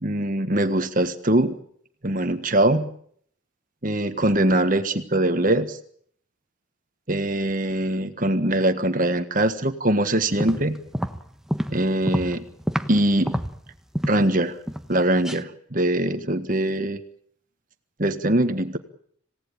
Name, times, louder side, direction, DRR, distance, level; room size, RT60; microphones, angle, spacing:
voice 1, 0.0-1.5 2.0-2.9 3.8-5.8 7.1-10.8 11.7-12.4 12.9-13.4 14.0-14.6 14.9-17.0 18.0-18.8, right 1 dB, 40° right, 9 dB, 1.5 m, -22 dB
sound 1, 10.2-13.0 13.3-14.3 14.7-15.0 15.2-15.4, equal, ahead, 1.1 m, -28 dB
27.5 x 17.5 x 8.7 m, 0.64 s
head